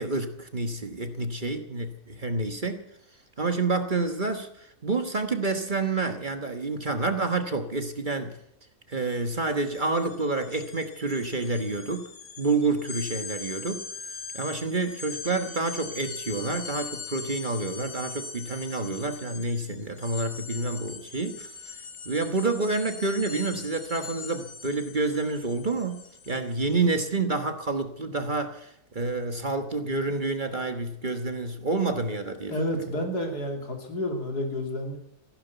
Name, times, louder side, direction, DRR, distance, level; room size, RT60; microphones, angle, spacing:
voice 1, 0.0-2.9 3.4-8.4 8.9-12.1 12.4-13.9 14.3-21.5 22.0-32.6, right 3 dB, 35° right, 7 dB, 1.4 m, -28 dB
sound 1, 9.0-9.2 9.5-26.7, left 5 dB, 65° left, 2.0 m, -41 dB
voice 2, 32.5-35.0, left 1 dB, 90° left, 3 dB, 3.4 m, -30 dB
15.5 x 11.5 x 8.1 m, 0.74 s
omnidirectional pair, 1.7 m